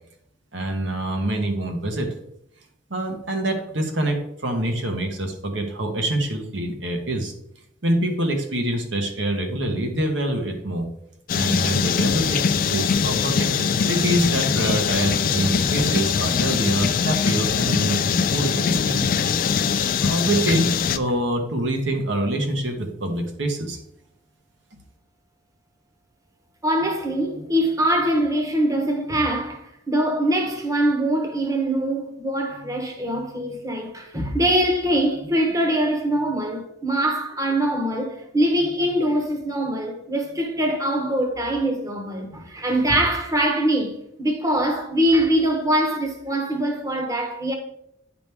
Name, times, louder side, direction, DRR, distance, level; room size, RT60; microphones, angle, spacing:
voice 1, 0.5-2.1 2.9-7.3 7.8-10.9 11.3-19.1 19.4-19.5 20.0-23.8, right 1 dB, 70° right, 1.2 m, -25 dB
sound 1, 11.3-21.0, left 6 dB, 45° left, 0.4 m, -22 dB
voice 2, 26.6-47.5, right 1 dB, 20° right, 1.0 m, -23 dB
9.3 x 5.1 x 3.4 m
head